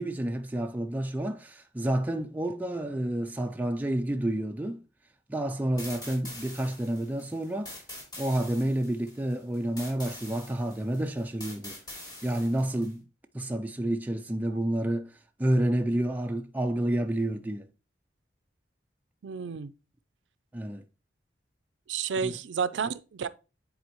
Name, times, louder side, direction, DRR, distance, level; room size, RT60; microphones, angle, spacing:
voice 1, 0.0-4.8 5.3-7.7 8.2-11.8 12.2-13.0 13.3-15.1 15.4-17.7 20.5-20.8 22.2-22.3, right 1 dB, 10° right, 0.3 m, -29 dB
sound 1, 5.8-12.9, left 1 dB, 20° left, 2.9 m, -44 dB
voice 2, 19.2-19.7 21.9-23.3, right 6 dB, 85° right, 0.4 m, -31 dB
9.6 x 4.1 x 3.0 m
head